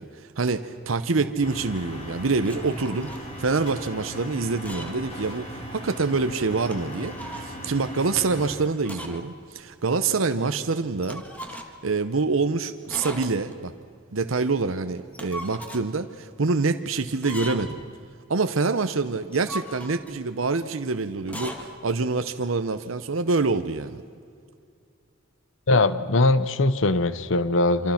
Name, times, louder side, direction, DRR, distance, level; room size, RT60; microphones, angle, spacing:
voice 1, 0.0-3.1 3.4-11.2 11.5-13.7 14.1-17.8 18.3-24.0, right 4 dB, 80° right, 9 dB, 0.8 m, -26 dB
sound 1, 1.4-8.6, equal, 30° left, 3.8 m, -38 dB
sound 2, 2.4-3.3 4.5-5.1 5.4-5.5 6.5-7.5 8.8-9.3 9.6-9.7 11.0-11.9 12.9-13.6 15.0-15.9 17.1-17.8 19.2-20.2 21.2-21.7, equal, 5° left, 1.9 m, -39 dB
voice 2, 25.7-27.9, left 2 dB, 70° left, 14 dB, 0.9 m, -21 dB
27.0 x 26.5 x 5.9 m, 2.2 s
head